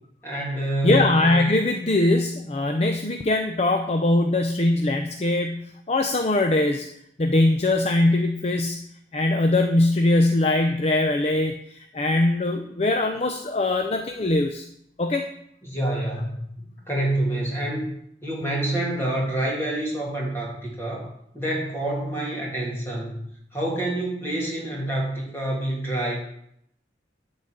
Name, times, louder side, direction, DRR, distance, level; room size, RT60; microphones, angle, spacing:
voice 1, 0.2-1.1 15.6-17.9 18.2-21.1 21.3-23.2 23.5-26.2, right 1 dB, 10° left, -4 dB, 2.5 m, -27 dB
voice 2, 0.8-6.9 7.2-8.8 9.1-14.6 15.0-15.3, left 2 dB, 35° left, 5 dB, 0.5 m, -22 dB
11.0 x 4.0 x 7.8 m, 0.74 s
head